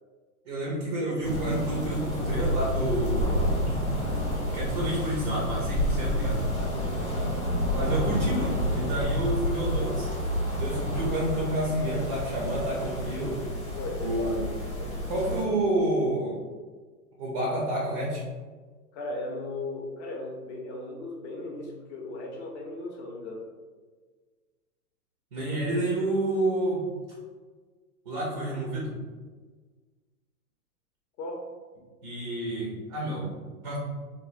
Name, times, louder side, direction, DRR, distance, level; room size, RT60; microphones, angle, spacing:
voice 1, 0.4-3.3 3.7-3.9 4.5-6.4 7.7-10.1 10.6-13.4 14.0-14.5 15.1-16.4 17.2-18.2 25.3-26.8 28.1-28.9 32.0-33.3 33.6-33.8, right 1 dB, 25° right, -4 dB, 0.4 m, -29 dB
sound 1, 1.2-15.4, equal, 10° left, 0.7 m, -29 dB
voice 2, 6.6-7.4 13.7-15.1 18.9-23.5 31.2-31.4, left 2 dB, 50° left, 0 dB, 0.7 m, -37 dB
3.2 x 2.2 x 2.4 m, 1.4 s
hypercardioid pair, 120°, 45 cm